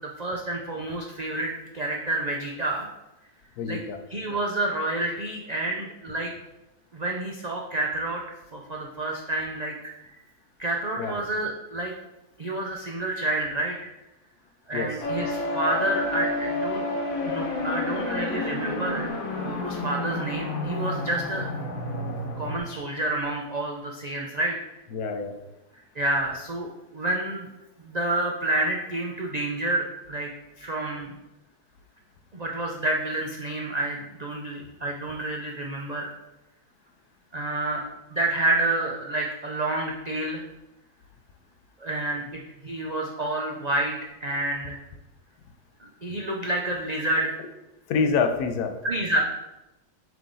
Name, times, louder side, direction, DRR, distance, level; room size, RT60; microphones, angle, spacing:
voice 1, 0.0-2.9 3.7-3.8 4.1-6.3 6.9-8.2 8.5-9.9 10.6-11.9 12.4-13.9 14.7-16.8 17.2-21.5 22.4-24.6 25.9-27.5 27.8-30.3 30.6-31.2 32.3-36.1 37.3-37.8 38.1-40.4 41.8-44.0 44.2-44.8 45.8-47.3 48.8-49.2, right 2 dB, 75° right, 0 dB, 0.3 m, -29 dB
voice 2, 3.6-4.0 11.0-11.2 14.7-14.9 24.9-25.4 47.9-48.8, left 5 dB, 80° left, 7 dB, 1.2 m, -26 dB
sound 1, 15.0-22.6, left 2 dB, 65° left, 1.3 m, -30 dB
7.6 x 3.5 x 3.9 m, 0.97 s
omnidirectional pair, 1.6 m